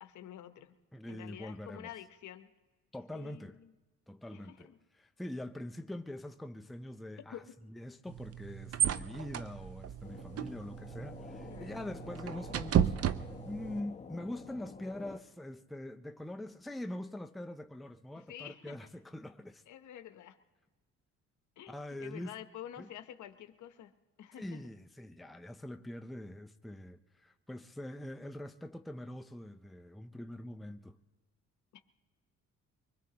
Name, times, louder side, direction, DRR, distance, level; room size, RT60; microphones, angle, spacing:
voice 1, 0.0-0.8 1.1-2.5 3.1-3.7 4.3-4.8 7.3-7.4 11.5-11.9 18.3-18.9 19.7-20.4 21.6-23.9 24.2-24.6 31.7-31.8, left 11 dB, 70° left, 1.0 m, -49 dB
voice 2, 0.9-1.9 2.9-3.6 4.1-13.0 13.4-19.6 21.7-22.4 22.8-22.9 24.4-31.0, left 1 dB, ahead, 0.5 m, -44 dB
sound 1, 8.1-13.8, right 9 dB, 55° right, 0.6 m, -34 dB
sound 2, 10.0-15.2, left 5 dB, 25° left, 1.0 m, -49 dB
24.0 x 20.5 x 2.9 m
cardioid pair, 90°, 30 cm